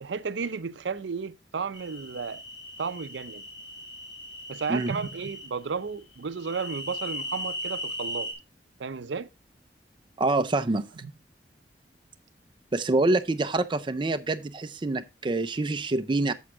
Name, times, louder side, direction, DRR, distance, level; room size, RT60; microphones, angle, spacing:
voice 1, 0.0-2.4 2.8-3.4 4.5-8.3 8.8-9.3, right 5 dB, 85° right, 0.6 m, -33 dB
sound 1, 1.7-5.5 6.4-8.3, left 1 dB, 80° left, 2.8 m, -38 dB
voice 2, 10.2-10.9 12.7-16.3, right 2 dB, 25° right, 0.5 m, -26 dB
7.8 x 7.1 x 3.7 m
head